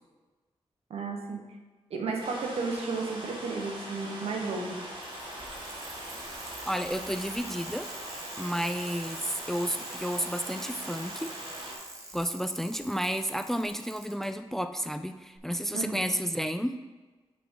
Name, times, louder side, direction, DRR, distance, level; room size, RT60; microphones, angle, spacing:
voice 1, 0.9-1.4 1.9-4.8 15.7-16.0, right 4 dB, 75° right, 2 dB, 1.2 m, -33 dB
sound 1, 2.2-11.7, right 1 dB, 50° right, 1.7 m, -41 dB
Bicycle, 4.6-14.3 15.4-15.5, right 2 dB, 30° right, 1.4 m, -45 dB
voice 2, 6.7-7.9 8.4-11.3 12.1-16.7, equal, 5° left, 8 dB, 0.3 m, -31 dB
8.1 x 5.8 x 3.8 m, 1.3 s
wide cardioid pair, 145°, 11 cm